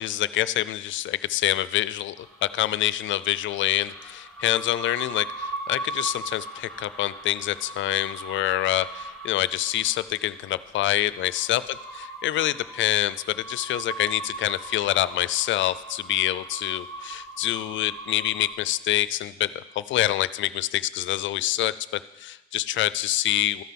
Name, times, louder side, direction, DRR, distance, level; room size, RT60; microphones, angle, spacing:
voice 1, 0.0-11.6 11.9-23.6, left 14 dB, 75° left, 17 dB, 0.4 m, -26 dB
sound 1, 2.2-18.5, right 2 dB, 5° left, 1.8 m, -39 dB
13.5 x 5.6 x 5.9 m, 1.1 s
cardioid pair, 90°, 20 cm